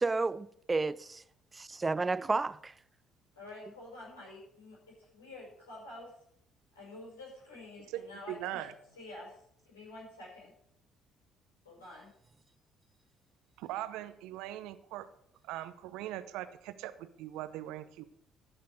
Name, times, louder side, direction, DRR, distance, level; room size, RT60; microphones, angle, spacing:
voice 1, 0.0-1.2 1.8-2.7, right 3 dB, 25° right, 0.4 m, -31 dB
voice 2, 3.3-4.8 5.1-6.1 6.7-8.7 9.0-9.4 9.7-10.5 11.6-12.1, left 2 dB, 80° left, 5.6 m, -48 dB
voice 3, 8.3-8.7 13.6-15.1 15.4-18.1, right 14 dB, 65° right, 0.7 m, -40 dB
14.5 x 6.7 x 5.1 m
figure-of-eight pair, 50°, 0 cm